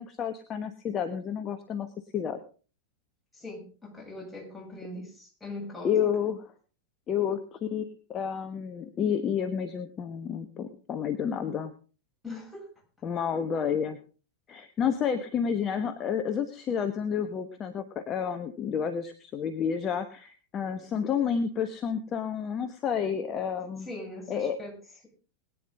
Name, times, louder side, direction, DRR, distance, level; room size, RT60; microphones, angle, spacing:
voice 1, 0.0-1.9 2.1-2.4 5.8-6.5 7.1-11.7 13.0-14.0 14.5-23.9 24.3-24.6, left 7 dB, 30° left, 8 dB, 1.2 m, -30 dB
voice 2, 3.3-5.9 12.2-12.7 23.8-24.8, left 2 dB, 5° left, -3 dB, 7.7 m, -41 dB
21.0 x 9.8 x 3.8 m, 0.37 s
figure-of-eight pair, 90°, 0 cm